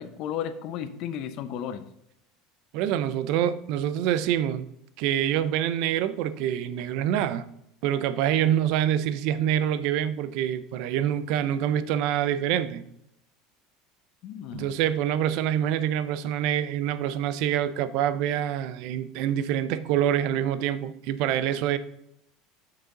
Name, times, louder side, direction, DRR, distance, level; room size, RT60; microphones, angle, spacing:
voice 1, 0.0-1.9 14.2-14.8, left 9 dB, 55° left, 11 dB, 0.7 m, -34 dB
voice 2, 2.7-4.7 5.0-7.5 7.8-12.9 14.5-21.8, right 10 dB, 65° right, 15 dB, 0.5 m, -26 dB
6.8 x 6.6 x 3.8 m, 0.77 s
supercardioid pair, 135°, 0 cm